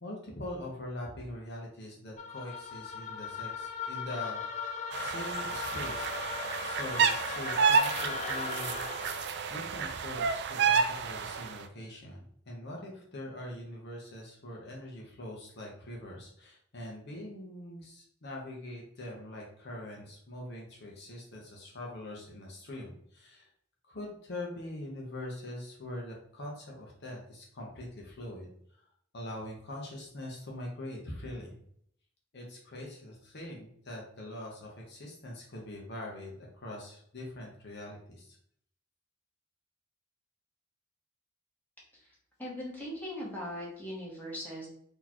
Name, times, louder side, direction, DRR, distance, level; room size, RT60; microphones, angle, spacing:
voice 1, 0.0-6.1 6.6-8.8 9.5-23.5 23.8-28.9 29.1-31.6 32.3-38.4, left 1 dB, 55° left, -2 dB, 0.9 m, -43 dB
sound 1, 2.2-9.4, left 6 dB, 35° left, 0.3 m, -38 dB
sound 2, 4.9-11.5, right 5 dB, 55° right, 0.4 m, -30 dB
voice 2, 42.4-44.7, equal, 10° left, -6 dB, 1.3 m, -39 dB
4.1 x 2.9 x 2.9 m, 0.66 s
head